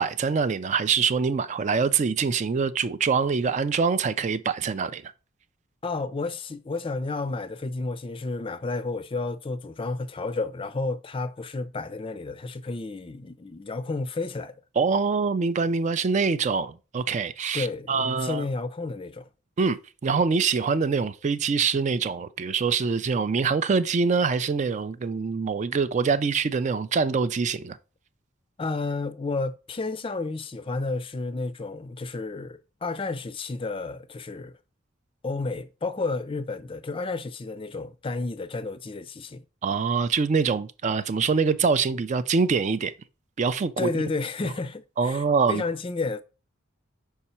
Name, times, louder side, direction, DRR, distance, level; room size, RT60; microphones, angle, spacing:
voice 1, 0.0-5.1 14.8-18.5 19.6-27.8 39.6-42.9 43.4-44.0 45.0-45.6, right 5 dB, 35° right, 0.3 m, -24 dB
voice 2, 5.8-14.5 17.5-19.3 28.6-34.5 35.2-39.4 43.8-46.2, left 3 dB, 25° left, 0.4 m, -31 dB
5.6 x 4.7 x 4.3 m
head